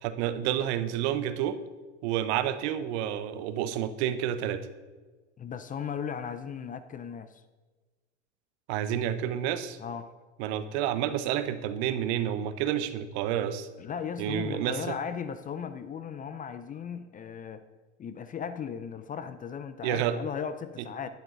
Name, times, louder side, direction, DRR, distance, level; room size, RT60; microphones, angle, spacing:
voice 1, 0.0-1.6 2.0-4.7 8.7-9.8 10.4-13.7 14.2-15.0 19.8-20.2, right 10 dB, 60° right, 12 dB, 1.1 m, -29 dB
voice 2, 5.4-7.4 9.8-10.1 13.8-17.6 18.0-21.1, left 7 dB, 20° left, 11 dB, 0.6 m, -37 dB
11.5 x 11.5 x 4.0 m, 1.3 s
hypercardioid pair, 110°, 36 cm